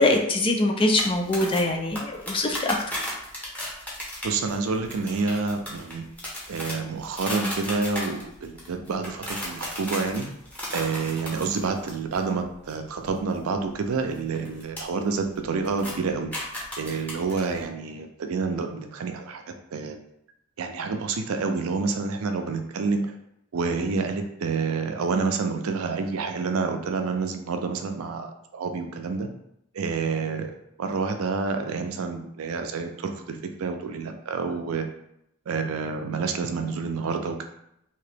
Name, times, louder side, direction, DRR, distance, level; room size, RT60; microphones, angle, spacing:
voice 1, 0.0-2.9, left 2 dB, 25° left, 2 dB, 0.3 m, -23 dB
sound 1, 1.0-12.2 12.5-12.7 13.0-14.8 15.1-15.4 15.6-17.6, left 1 dB, 5° left, 0.7 m, -35 dB
voice 2, 4.2-6.1 6.5-10.3 10.7-16.3 16.8-19.4 19.7-20.0 20.6-23.1 23.5-29.3 29.7-34.9 35.5-37.4, right 4 dB, 85° right, 5 dB, 0.4 m, -28 dB
2.9 x 2.8 x 3.3 m, 0.78 s
head